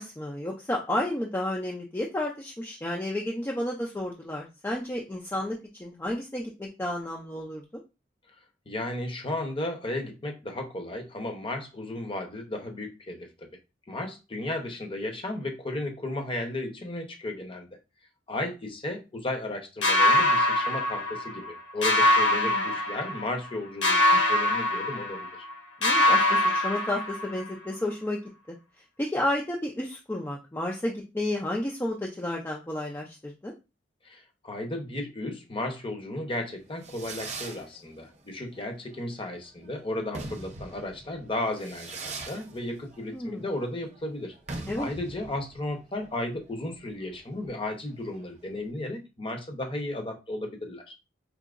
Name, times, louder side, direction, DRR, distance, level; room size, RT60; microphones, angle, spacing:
voice 1, 0.0-7.8 22.3-22.7 25.8-28.2 28.5-28.6 29.0-33.5 43.1-43.4 44.7-44.9, left 1 dB, 10° left, 0.5 m, -32 dB
voice 2, 8.7-13.3 13.9-17.7 18.3-25.3 34.0-44.3 44.8-50.9, left 1 dB, 30° left, 0.8 m, -34 dB
sound 1, 19.8-21.5 21.8-23.5 23.8-25.5 25.8-27.5, left 1 dB, 75° left, 1.0 m, -23 dB
Fireworks, 36.5-48.7, right 3 dB, 40° right, 0.7 m, -43 dB
4.7 x 2.7 x 2.5 m
head